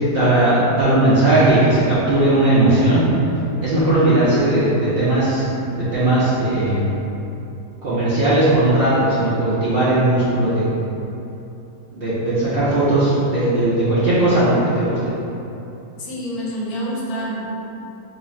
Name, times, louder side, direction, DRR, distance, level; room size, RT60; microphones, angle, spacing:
voice 1, 0.1-3.0 3.6-5.4 5.8-6.9 7.8-10.7 11.9-15.1, right 1 dB, 80° right, -11 dB, 0.5 m, -17 dB
voice 2, 16.0-17.5, equal, 70° left, -4 dB, 1.0 m, -27 dB
2.9 x 2.4 x 4.1 m, 2.9 s
omnidirectional pair, 1.8 m